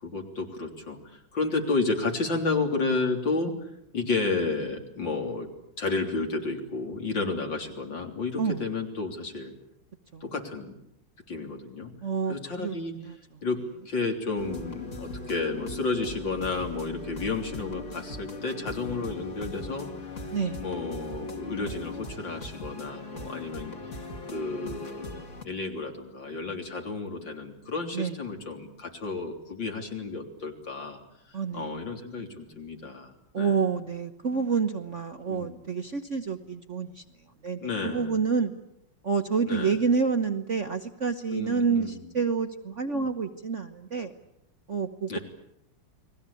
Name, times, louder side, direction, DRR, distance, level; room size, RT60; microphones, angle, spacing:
voice 1, 0.0-3.5 3.9-5.5 5.8-9.5 10.2-10.8 11.3-11.9 12.3-12.9 13.4-13.6 13.9-19.9 20.6-23.7 24.3-31.0 31.5-33.6 35.3-35.6 37.6-38.1 39.5-39.8 41.3-42.0 42.9-43.1 45.1-45.2, left 3 dB, 60° left, 3 dB, 4.1 m, -31 dB
voice 2, 12.0-13.4 20.3-20.6 27.9-28.2 31.3-31.9 33.3-37.0 37.4-38.5 39.0-44.1 44.7-45.2, right 5 dB, 40° right, 7 dB, 1.2 m, -28 dB
sound 1, 14.4-25.4, left 2 dB, 35° left, 2.8 m, -39 dB
30.0 x 21.0 x 8.5 m, 0.80 s
omnidirectional pair, 2.3 m